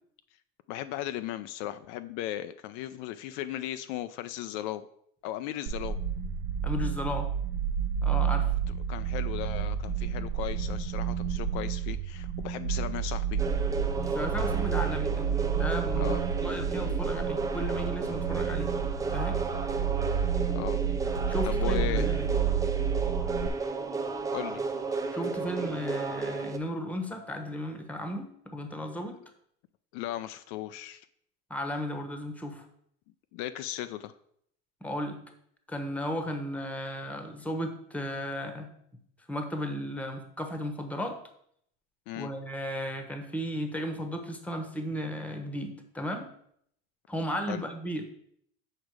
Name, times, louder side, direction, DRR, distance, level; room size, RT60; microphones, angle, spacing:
voice 1, 0.7-4.8 5.2-6.0 8.9-13.4 16.0-16.2 20.5-20.8 21.4-22.1 24.3-24.6 29.9-31.1 33.3-34.1 42.1-42.3 47.5-47.6, left 13 dB, 65° left, 11 dB, 0.5 m, -36 dB
sound 1, 5.7-23.5, right 8 dB, 85° right, 0.7 m, -30 dB
voice 2, 6.6-7.3 8.0-8.5 14.1-15.3 15.5-18.7 19.1-19.4 21.3-22.3 25.1-29.2 31.5-32.7 34.8-35.2 35.7-38.7 39.3-41.2 42.2-46.3 47.1-48.0, equal, 5° left, 5 dB, 1.0 m, -35 dB
sound 2, 13.4-26.6, right 4 dB, 10° right, 0.5 m, -33 dB
6.5 x 5.0 x 4.7 m, 0.70 s
supercardioid pair, 130°, 31 cm